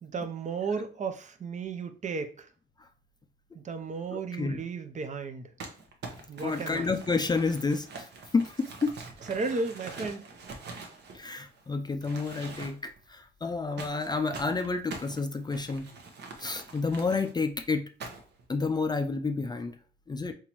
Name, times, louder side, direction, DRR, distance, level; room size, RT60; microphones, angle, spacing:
voice 1, 0.0-2.5 3.5-5.5 6.3-6.9 9.3-10.2, right 4 dB, 35° right, 0.5 m, -34 dB
voice 2, 4.1-4.6 6.4-8.1 8.3-8.9 11.1-15.9 16.4-17.8 18.5-19.8 20.1-20.3, left 4 dB, 20° left, 0.4 m, -30 dB
Crumpling crinkling, 5.6-11.6 12.0-13.0 13.8-17.3 18.0-18.4, right 3 dB, 60° right, 0.9 m, -44 dB
3.6 x 3.0 x 2.9 m
cardioid pair, 90°, 20 cm